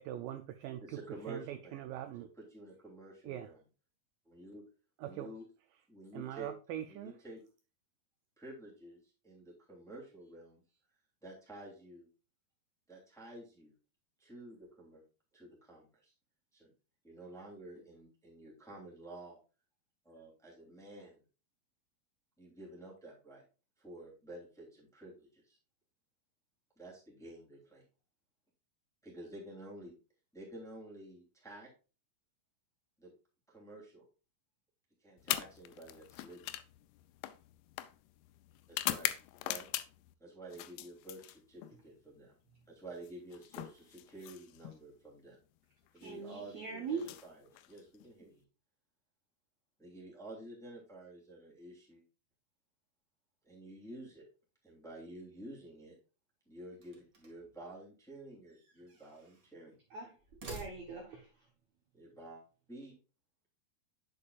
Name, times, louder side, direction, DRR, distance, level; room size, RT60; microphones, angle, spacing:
voice 1, 0.0-0.8 1.3-2.3 3.2-3.5 5.0-5.3 6.1-7.1, right 12 dB, 85° right, 1.9 m, -42 dB
voice 2, 0.8-1.8 2.2-3.6 4.2-4.6 5.0-5.5 5.9-6.5 6.9-7.4 8.4-10.6 11.2-12.1 12.9-13.7 14.2-15.0 15.3-16.1 16.5-16.7 17.0-19.4 20.0-21.2 22.4-23.4 23.8-25.6 26.8-27.8 29.0-29.9 30.3-31.7 33.0-33.1 33.5-34.1 35.0-36.5 38.7-39.7 40.2-42.3 42.7-45.4 45.9-47.3 47.7-48.4 49.8-52.0 53.5-54.3 54.6-56.0 56.5-59.8 61.9-62.4 62.7-63.0, right 1 dB, ahead, 1.9 m, -50 dB
sound 1, 35.2-40.1 40.5-41.8 43.0-44.8 45.9-46.1 46.9-48.1, left 15 dB, 90° left, 2.5 m, -41 dB
voice 3, 46.0-47.1 59.9-60.1 60.5-61.5, right 5 dB, 65° right, 1.8 m, -41 dB
sound 2, 56.7-57.6 58.5-59.5 60.2-61.2, right 2 dB, 45° right, 1.2 m, -50 dB
8.5 x 6.4 x 2.4 m
omnidirectional pair, 4.4 m